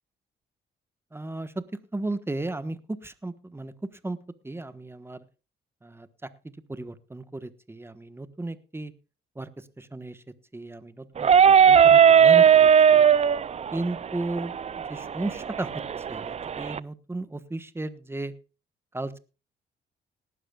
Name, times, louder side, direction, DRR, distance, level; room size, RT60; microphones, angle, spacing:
voice 1, 1.1-1.6 1.9-3.7 4.0-4.2 4.4-5.2 5.8-8.9 9.4-9.5 9.8-10.2 10.5-13.1 13.7-15.7 16.0-18.3 18.9-19.2, right 2 dB, 10° right, 12 dB, 1.3 m, -35 dB
sound 1, 11.2-16.8, right 8 dB, 35° right, 0.5 m, -18 dB
18.5 x 12.5 x 2.4 m, 0.32 s
cardioid pair, 90°, 20 cm